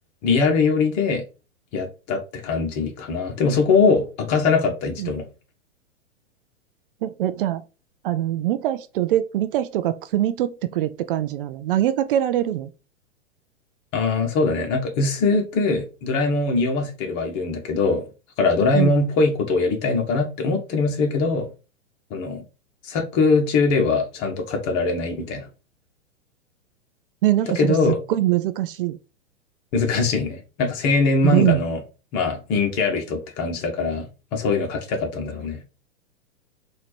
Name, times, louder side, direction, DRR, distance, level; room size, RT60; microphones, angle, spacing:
voice 1, 0.2-1.2 1.7-5.3 13.9-18.1 18.4-21.5 22.1-22.4 22.8-25.5 27.5-28.0 29.7-31.8 32.1-35.6, left 4 dB, 40° left, 1.4 m, -22 dB
voice 2, 7.0-7.6 8.0-12.7 18.7-18.9 27.2-29.0 31.2-31.6, right 13 dB, 50° right, 0.5 m, -23 dB
4.2 x 2.8 x 4.4 m
hypercardioid pair, 110°, 36 cm